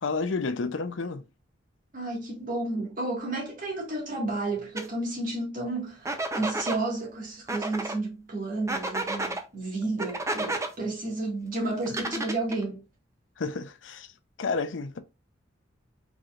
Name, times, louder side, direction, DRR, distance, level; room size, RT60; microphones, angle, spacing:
voice 1, 0.0-1.2 13.4-14.1 14.4-15.0, left 4 dB, 70° left, 0.6 m, -30 dB
voice 2, 1.9-12.9, right 2 dB, 45° right, 1.7 m, -32 dB
sound 1, 4.8-4.9 6.0-6.8 7.5-8.0 8.7-9.4 10.0-10.7 11.9-12.6, right 2 dB, 15° right, 0.6 m, -31 dB
4.7 x 4.0 x 2.4 m
head